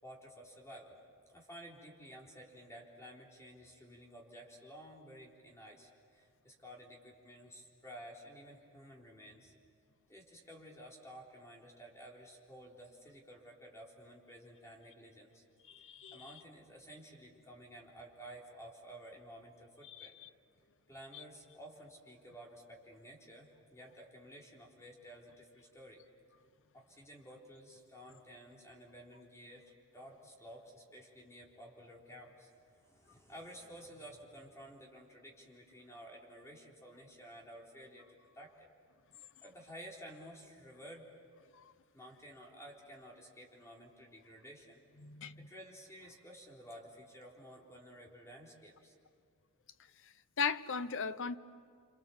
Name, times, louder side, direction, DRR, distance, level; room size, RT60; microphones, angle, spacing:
voice 1, 0.0-1.0 1.3-9.5 10.1-15.4 16.1-20.2 20.9-26.0 26.7-29.6 29.9-38.7 39.4-41.1 41.9-44.8 45.4-48.9, equal, 15° left, -2 dB, 3.9 m, -53 dB
voice 2, 15.7-16.2 19.9-20.3 45.0-45.5 50.4-51.4, left 5 dB, 60° left, 13 dB, 0.8 m, -37 dB
28.0 x 27.5 x 7.2 m, 2.2 s
head